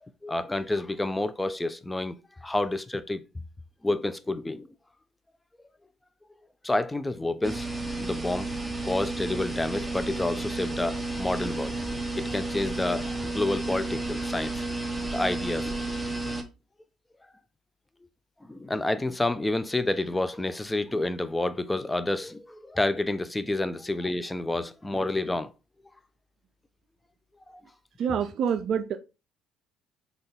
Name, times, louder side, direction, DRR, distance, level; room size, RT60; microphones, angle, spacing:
voice 1, 0.0-3.2 3.8-4.7 6.6-7.7 8.0-8.5 8.8-11.7 12.2-14.6 15.1-15.8 18.4-25.5 27.5-27.6, left 2 dB, 15° left, 0.4 m, -29 dB
sound 1, 7.4-16.4, right 2 dB, 5° right, 0.8 m, -32 dB
voice 2, 28.0-29.0, right 7 dB, 60° right, 0.3 m, -27 dB
3.8 x 2.3 x 3.6 m
hypercardioid pair, 60°, 0 cm